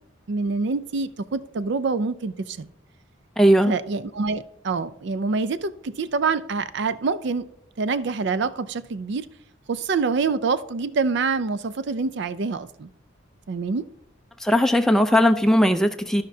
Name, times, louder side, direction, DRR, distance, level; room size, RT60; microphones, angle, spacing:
voice 1, 0.3-2.7 3.7-7.4 7.8-9.3 9.7-12.9 13.5-13.9, right 4 dB, 60° right, 14 dB, 0.4 m, -26 dB
voice 2, 3.4-3.7 14.4-16.2, equal, ahead, 6 dB, 0.4 m, -18 dB
14.5 x 5.1 x 2.7 m, 0.77 s
head